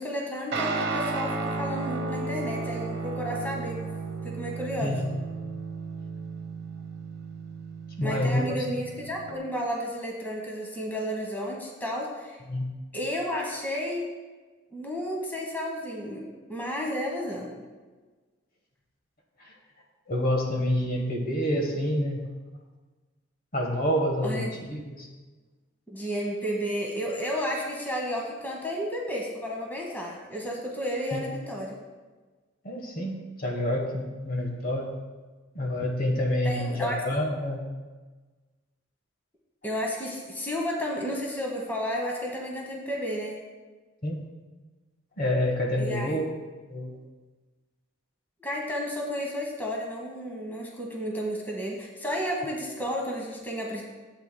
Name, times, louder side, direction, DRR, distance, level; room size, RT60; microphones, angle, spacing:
voice 1, 0.0-3.8 4.2-4.9 8.0-12.4 12.9-14.0 14.7-17.5 24.2-24.5 25.9-31.8 36.4-37.0 39.6-43.4 45.8-46.2 48.4-53.8, equal, 10° left, -1 dB, 1.1 m, -32 dB
Guitar, 0.5-9.3, right 3 dB, 55° right, 1.0 m, -34 dB
voice 2, 8.0-8.7 12.5-12.7 19.4-19.5 20.1-22.2 23.5-25.1 31.1-31.2 32.6-34.9 35.5-37.7 44.0-44.2 45.2-46.3 46.7-47.0, left 1 dB, 45° left, 1 dB, 1.2 m, -28 dB
12.0 x 8.1 x 2.2 m, 1.3 s
head